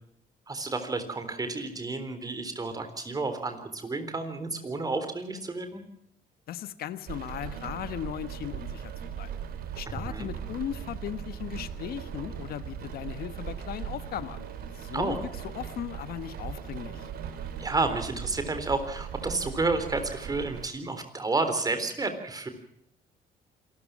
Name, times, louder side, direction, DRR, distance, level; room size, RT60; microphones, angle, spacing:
voice 1, 0.5-5.8 9.9-10.3 14.9-15.2 17.6-22.5, right 3 dB, 20° right, 8 dB, 3.8 m, -31 dB
voice 2, 6.5-9.3 9.8-14.5 14.7-15.2 15.5-17.1, left 10 dB, 65° left, 13 dB, 1.2 m, -37 dB
Rain, 7.1-20.7, right 8 dB, 60° right, 3.1 m, -39 dB
27.0 x 14.0 x 7.5 m, 0.73 s
cardioid pair, 110°, 17 cm